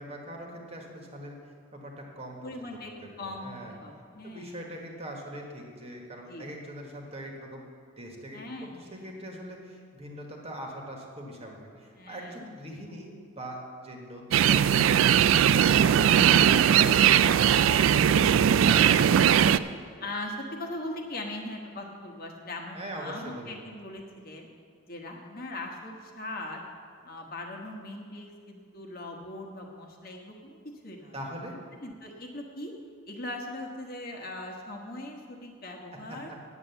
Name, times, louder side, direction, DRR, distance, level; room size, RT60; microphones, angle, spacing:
voice 1, 0.0-1.4 1.7-2.5 3.0-3.1 3.4-3.7 4.2-7.7 8.0-15.0 22.7-23.5 31.1-31.6 36.1-36.4, equal, 30° right, 0 dB, 1.4 m, -42 dB
voice 2, 2.4-2.9 3.2-4.6 6.3-6.5 8.3-9.1 12.0-12.4 20.0-24.5 24.9-26.6 27.0-30.6 30.8-31.1 31.8-32.7 33.1-36.3, left 1 dB, 45° left, 1 dB, 1.3 m, -40 dB
sound 1, 14.3-19.6, right 9 dB, 70° right, 0.3 m, -20 dB
9.5 x 8.1 x 6.9 m, 2.2 s
head